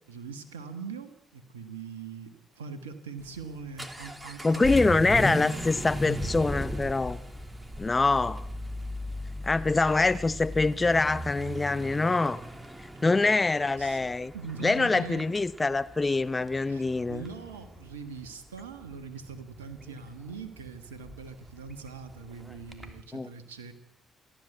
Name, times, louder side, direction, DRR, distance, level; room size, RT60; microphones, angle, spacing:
voice 1, 0.1-5.3 13.8-14.0 14.3-15.3 16.7-23.7, right 5 dB, 85° right, 9 dB, 1.5 m, -42 dB
Vehicle / Accelerating revving vroom, 3.2-23.0, equal, 10° right, 3.3 m, -38 dB
voice 2, 4.4-7.2 7.8-8.4 9.4-12.4 13.0-14.3 14.6-17.2 23.1-23.3, left 3 dB, 30° left, 15 dB, 0.9 m, -25 dB
29.5 x 11.5 x 8.1 m, 0.88 s
hypercardioid pair, 45°, 0 cm